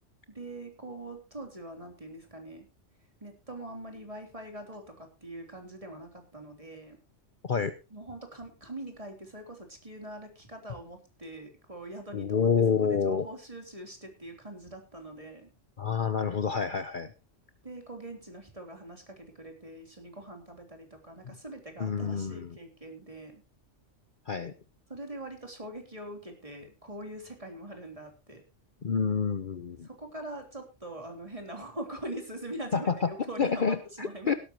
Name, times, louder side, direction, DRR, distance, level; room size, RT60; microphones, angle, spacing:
voice 1, 0.3-2.7 3.2-7.0 7.9-12.5 12.8-15.5 17.6-23.4 24.9-28.4 29.8-34.3, right 1 dB, 25° right, 3 dB, 3.6 m, -43 dB
voice 2, 12.1-13.2 15.8-17.1 21.2-21.3 21.8-22.6 24.3-24.5 28.8-29.9 32.7-34.4, left 6 dB, 45° left, 10 dB, 1.0 m, -28 dB
17.0 x 13.0 x 3.0 m, 0.29 s
omnidirectional pair, 1.3 m